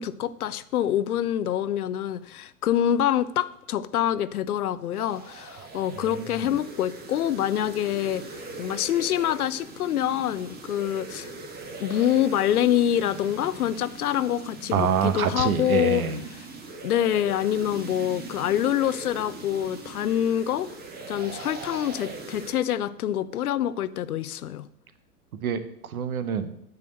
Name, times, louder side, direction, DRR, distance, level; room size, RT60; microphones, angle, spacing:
voice 1, 0.0-8.3 8.6-11.3 11.8-16.0 16.8-20.7 21.1-24.7, left 11 dB, 70° left, 0.7 m, -26 dB
sound 1, 4.9-22.5, right 3 dB, 20° right, 1.5 m, -41 dB
voice 2, 6.1-6.6 14.7-16.2 25.3-26.5, right 8 dB, 65° right, 1.2 m, -26 dB
9.5 x 4.9 x 7.8 m
figure-of-eight pair, 100°, 47 cm